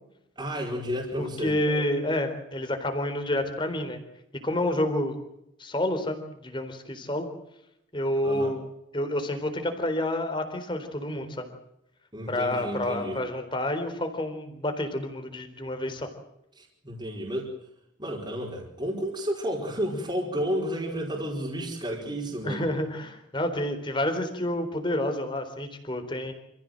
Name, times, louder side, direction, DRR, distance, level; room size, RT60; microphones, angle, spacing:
voice 1, 0.4-1.5 8.2-8.5 12.1-13.2 16.6-17.5 18.0-22.6, equal, 20° right, -2 dB, 4.8 m, -31 dB
voice 2, 1.2-4.0 4.4-5.2 5.6-7.3 7.9-8.6 8.9-11.5 12.3-16.1 22.4-26.3, left 1 dB, 25° left, 7 dB, 4.0 m, -29 dB
28.5 x 15.5 x 7.7 m, 0.82 s
head